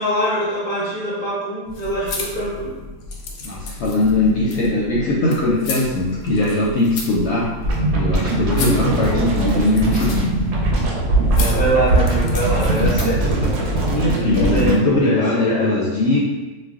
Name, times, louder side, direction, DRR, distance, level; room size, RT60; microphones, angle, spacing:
voice 1, 0.0-2.7 11.3-13.6 14.2-15.2 15.5-15.7, right 1 dB, 10° right, -8 dB, 0.6 m, -23 dB
sound 1, 1.6-13.3, left 3 dB, 90° left, 1.1 m, -33 dB
voice 2, 3.4-7.5 7.9-10.2 13.9-16.2, left 2 dB, 65° left, -5 dB, 0.7 m, -20 dB
sound 2, 7.6-14.8, right 2 dB, 60° right, 0.8 m, -20 dB
2.4 x 2.1 x 3.5 m, 1.2 s
omnidirectional pair, 1.5 m